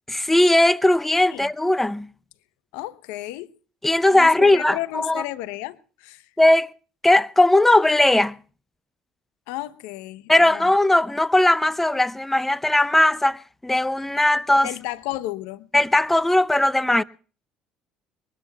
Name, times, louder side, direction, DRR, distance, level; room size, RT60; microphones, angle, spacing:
voice 1, 0.1-2.1 3.8-5.2 6.4-6.7 7.0-8.4 10.3-14.7 15.7-17.0, left 1 dB, 10° left, 0.7 m, -18 dB
voice 2, 2.7-3.5 4.1-6.2 9.5-10.7 14.6-15.7, left 17 dB, 75° left, 0.9 m, -33 dB
22.5 x 20.0 x 2.3 m
hypercardioid pair, 65°, 2 cm